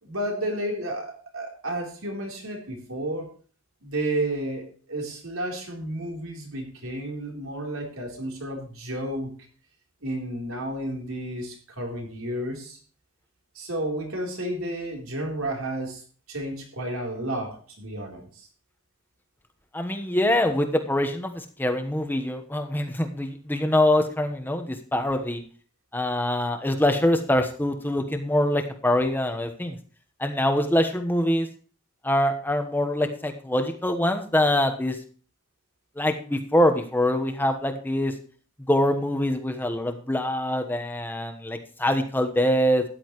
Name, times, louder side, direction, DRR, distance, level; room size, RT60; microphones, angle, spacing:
voice 1, 0.0-3.3 3.8-9.3 10.0-12.8 13.5-16.0 16.3-18.5, right 1 dB, 80° right, 1 dB, 3.8 m, -32 dB
voice 2, 19.7-25.4 25.9-29.8 30.2-31.5 32.0-35.0 36.0-38.1 38.7-42.8, left 1 dB, 10° left, 5 dB, 1.1 m, -24 dB
13.0 x 10.5 x 3.1 m, 0.41 s
head